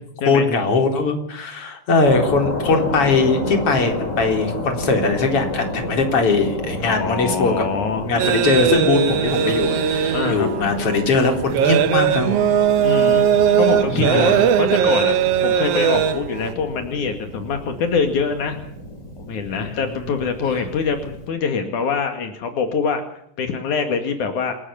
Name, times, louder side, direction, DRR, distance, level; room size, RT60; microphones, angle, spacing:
voice 1, 0.3-7.7 8.0-12.5 13.9-14.4 19.5-20.1, left 3 dB, 50° left, 4 dB, 4.8 m, -20 dB
sound 1, 2.0-21.3, left 1 dB, 25° left, 4.4 m, -31 dB
voice 2, 6.8-8.1 10.1-10.5 12.8-13.2 13.6-15.2 15.4-18.6 19.2-23.0 23.4-24.5, left 5 dB, 80° left, 6 dB, 3.7 m, -24 dB
sound 2, 8.2-16.5, right 8 dB, 65° right, 1.8 m, -19 dB
28.0 x 16.5 x 7.2 m, 0.69 s
omnidirectional pair, 3.4 m